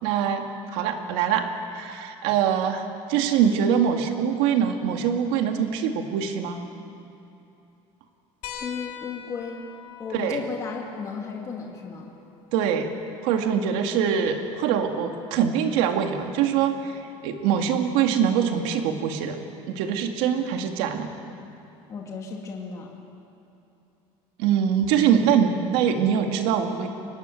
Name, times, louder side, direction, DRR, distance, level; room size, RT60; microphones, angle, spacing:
voice 1, 0.0-1.5 1.7-6.6 10.1-10.4 12.5-12.9 13.2-17.0 17.2-19.4 19.7-21.1 24.4-26.9, right 8 dB, 85° right, 4 dB, 2.3 m, -23 dB
sound 1, 8.4-13.5 15.0-15.1 16.8-16.9, left 7 dB, 60° left, 2.3 m, -43 dB
voice 2, 8.6-9.7 10.0-12.1 13.6-13.9 21.9-22.9, left 5 dB, 25° left, 0 dB, 2.2 m, -34 dB
24.0 x 19.0 x 9.3 m, 2.8 s
cardioid pair, 180°, 13 cm